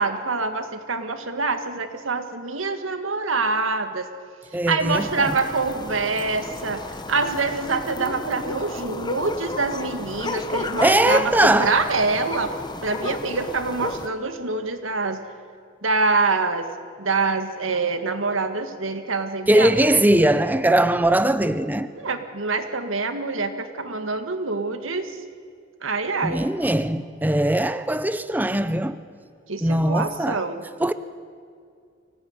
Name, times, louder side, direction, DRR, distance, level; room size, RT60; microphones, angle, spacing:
voice 1, 0.0-4.1 4.5-12.5 12.8-15.2 15.8-16.7 17.0-19.9 22.0-25.2 25.8-26.5 29.5-30.6, right 3 dB, 85° right, 1.9 m, -25 dB
voice 2, 4.5-5.3 10.8-11.8 19.5-21.9 26.2-29.0 29.6-30.4 30.8-30.9, right 1 dB, 10° right, 0.6 m, -20 dB
sound 1, 4.9-14.1, left 2 dB, 20° left, 1.1 m, -33 dB
24.5 x 18.0 x 9.6 m
head